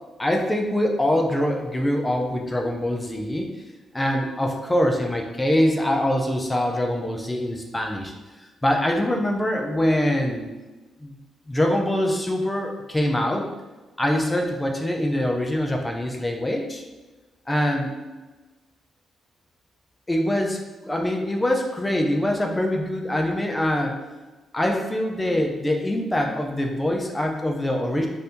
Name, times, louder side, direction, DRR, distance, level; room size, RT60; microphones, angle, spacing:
voice 1, 0.2-3.5 3.9-8.1 8.6-10.5 11.0-11.1 11.5-13.5 14.0-16.8 17.5-17.9 20.1-24.0 24.5-28.1, left 1 dB, 15° left, 1 dB, 0.4 m, -24 dB
2.7 x 2.6 x 3.4 m, 1.2 s
cardioid pair, 105°, 0 cm